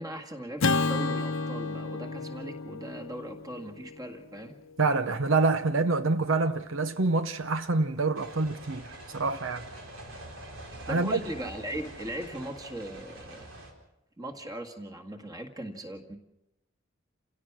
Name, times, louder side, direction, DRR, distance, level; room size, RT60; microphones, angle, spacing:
voice 1, 0.0-4.6 10.9-13.5 14.2-16.2, right 1 dB, 20° right, 1.9 m, -39 dB
Acoustic guitar / Strum, 0.6-5.0, left 3 dB, 80° left, 0.9 m, -32 dB
voice 2, 4.8-9.7 10.9-11.2, right 3 dB, 70° right, 0.8 m, -26 dB
sound 1, 8.1-13.7, right 1 dB, 90° right, 4.2 m, -45 dB
29.0 x 17.0 x 6.1 m
head